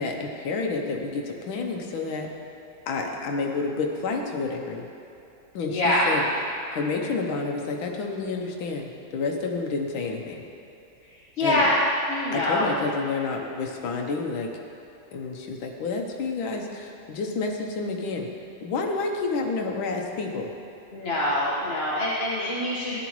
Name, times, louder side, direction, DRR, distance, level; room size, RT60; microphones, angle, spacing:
voice 1, 0.0-2.3 2.9-4.9 5.5-6.3 6.7-10.4 11.4-11.6 12.3-14.5 15.1-18.3 18.6-20.5, left 4 dB, 90° left, 1 dB, 1.7 m, -29 dB
voice 2, 5.7-6.1 11.4-11.7 12.1-12.7 20.9-23.0, left 1 dB, 35° left, -8 dB, 1.4 m, -24 dB
14.5 x 10.5 x 3.1 m, 2.8 s
omnidirectional pair, 2.1 m